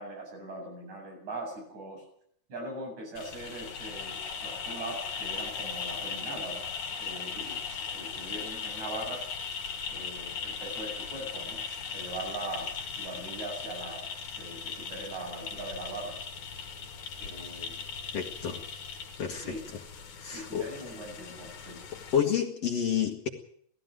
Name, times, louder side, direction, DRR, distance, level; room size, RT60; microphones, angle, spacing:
voice 1, 0.0-2.1 2.5-9.2 9.9-11.6 11.9-12.7 13.0-14.1 14.4-16.2 17.2-17.9 19.4-19.6 20.3-21.8, right 2 dB, 70° right, 1 dB, 8.9 m, -41 dB
sound 1, 3.2-22.2, left 6 dB, 90° left, 3.7 m, -38 dB
voice 2, 18.1-18.6 19.2-19.4 20.2-20.7 22.1-23.3, left 8 dB, 60° left, 2 dB, 2.7 m, -29 dB
18.5 x 15.5 x 9.3 m, 0.64 s
omnidirectional pair, 3.4 m